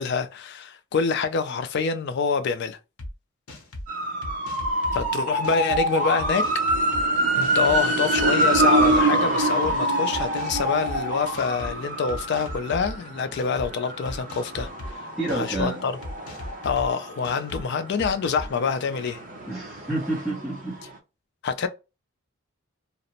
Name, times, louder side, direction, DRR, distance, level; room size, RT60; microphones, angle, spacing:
voice 1, 0.0-2.8 4.9-6.4 7.4-15.0 15.3-16.0 16.6-19.2 21.4-21.7, left 5 dB, 55° left, 0.3 m, -26 dB
sound 1, 3.0-3.1 3.5-3.9 4.2-5.1 5.4-5.8 6.2-7.0 7.4-7.8 8.1-9.0 9.4-9.7 10.1-11.0 11.3-11.7 12.1-12.9 13.3-13.7 14.0-14.9 15.3-15.6 16.0-16.9 17.2-17.6 18.0-18.5, left 1 dB, 85° left, 0.7 m, -37 dB
sound 2, 3.9-17.6 18.0-20.6 20.8-20.9, right 1 dB, 40° right, 0.6 m, -25 dB
voice 2, 15.2-15.9 19.5-20.8, right 2 dB, ahead, 0.8 m, -29 dB
2.4 x 2.0 x 2.8 m
head